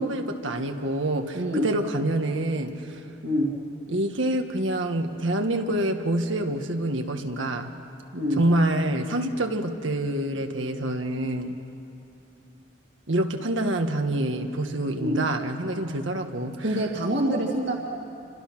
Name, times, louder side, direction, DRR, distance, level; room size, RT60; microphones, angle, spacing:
voice 1, 0.0-3.0 3.9-7.7 8.4-11.6 13.1-16.9, right 1 dB, 80° right, 5 dB, 1.5 m, -27 dB
voice 2, 1.3-1.7 3.2-3.5 8.1-8.5 15.0-15.2 16.6-17.8, equal, 65° right, -1 dB, 2.3 m, -25 dB
29.0 x 26.0 x 6.1 m, 2.8 s
head